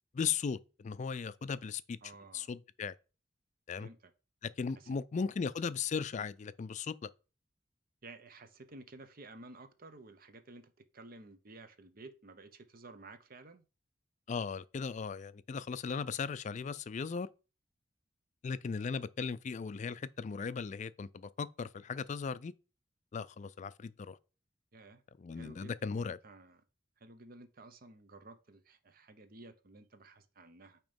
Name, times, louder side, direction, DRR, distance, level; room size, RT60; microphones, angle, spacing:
voice 1, 0.1-2.0 2.3-2.9 3.7-3.9 4.4-7.1 14.3-17.3 18.4-22.5 23.1-24.2 25.2-26.2, left 5 dB, 40° left, 0.3 m, -37 dB
voice 2, 2.0-2.5 3.8-4.0 5.2-5.3 8.0-10.6 10.9-13.6 24.7-25.0 25.3-26.6 27.0-30.8, right 2 dB, 50° right, 0.8 m, -53 dB
8.9 x 3.0 x 5.1 m
head